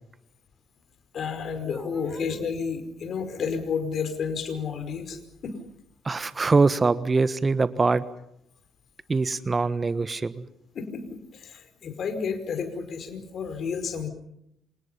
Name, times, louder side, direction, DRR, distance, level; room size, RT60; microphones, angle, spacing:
voice 1, 1.1-5.5 10.7-14.1, left 6 dB, 55° left, 9 dB, 5.1 m, -31 dB
voice 2, 1.7-2.2 6.0-8.0 9.1-10.4, right 4 dB, 30° right, 15 dB, 1.3 m, -24 dB
28.0 x 27.0 x 5.6 m, 0.76 s
hypercardioid pair, 50°, 0 cm